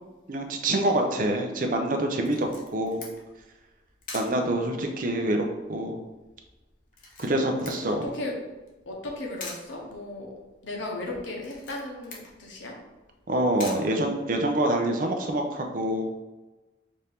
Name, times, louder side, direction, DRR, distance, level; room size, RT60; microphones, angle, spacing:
voice 1, 0.3-3.0 4.1-6.0 7.2-8.1 13.3-16.1, right 1 dB, 45° right, 3 dB, 0.5 m, -26 dB
Camera, 2.2-14.7, left 3 dB, 45° left, 0.8 m, -47 dB
voice 2, 7.5-8.3 8.9-10.3 10.6-12.8, left 2 dB, 85° left, -1 dB, 1.0 m, -36 dB
4.2 x 2.6 x 3.5 m, 1.1 s
head